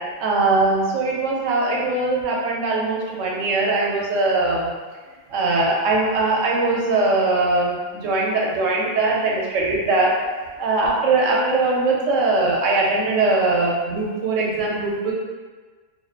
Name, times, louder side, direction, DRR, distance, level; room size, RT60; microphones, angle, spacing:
voice 1, 0.2-4.7 5.3-10.1 10.6-15.1, right 3 dB, 90° right, -3 dB, 0.9 m, -21 dB
2.4 x 2.4 x 2.4 m, 1.4 s
omnidirectional pair, 1.3 m